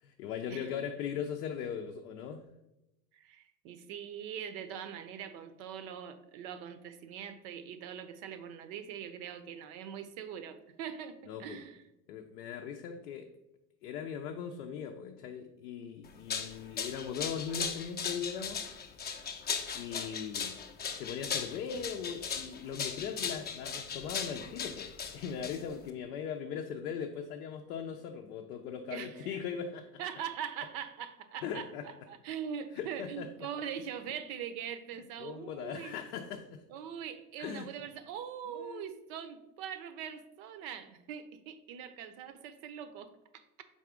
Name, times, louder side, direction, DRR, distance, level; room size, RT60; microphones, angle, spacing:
voice 1, 0.0-2.4 11.3-11.6 12.1-13.3 13.8-18.6 19.7-20.6 20.9-29.9 31.4-31.8 32.7-33.3 35.2-36.6 37.4-37.7 38.5-38.9, left 7 dB, 80° left, 4 dB, 0.5 m, -39 dB
voice 2, 3.1-11.8 28.9-29.4 30.0-35.9 36.7-43.4, right 8 dB, 60° right, 11 dB, 0.6 m, -42 dB
sound 1, 16.1-25.9, left 6 dB, 20° left, 0.5 m, -38 dB
4.1 x 3.6 x 3.6 m, 0.92 s
hypercardioid pair, 75°, 46 cm